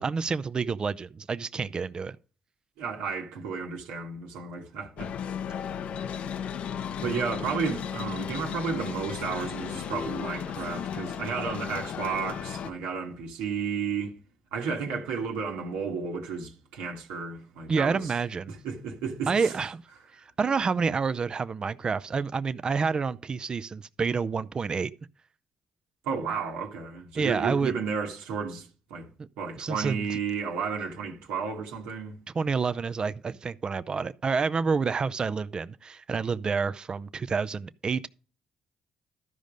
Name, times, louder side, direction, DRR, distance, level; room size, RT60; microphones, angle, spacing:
voice 1, 0.0-2.2 17.7-18.5 19.3-19.8 20.1-24.9 27.1-27.7 29.2-29.3 29.6-30.2 32.3-38.1, right 5 dB, 40° right, 0.5 m, -28 dB
voice 2, 2.8-5.1 7.0-14.1 14.5-18.1 18.5-19.5 26.0-29.1 29.4-32.2, right 5 dB, 90° right, 1.5 m, -32 dB
sound 1, 5.0-12.7, left 8 dB, 65° left, 0.7 m, -35 dB
12.5 x 5.2 x 5.1 m
supercardioid pair, 65°, 2 cm